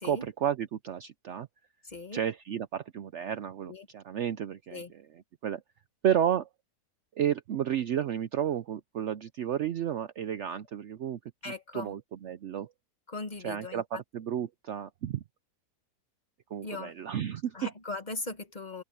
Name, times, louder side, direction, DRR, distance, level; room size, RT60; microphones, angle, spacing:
voice 1, 0.0-1.5 2.1-5.0 5.4-5.6 6.0-6.5 7.2-11.2 11.5-12.7 13.4-15.2 16.5-17.5, right 9 dB, 60° right, 0.8 m, -32 dB
voice 2, 1.8-2.2 3.6-3.9 4.7-4.9 11.4-11.9 13.1-14.0 16.6-17.0 17.5-18.8, left 3 dB, 30° left, 1.3 m, -39 dB
open air
omnidirectional pair, 1.6 m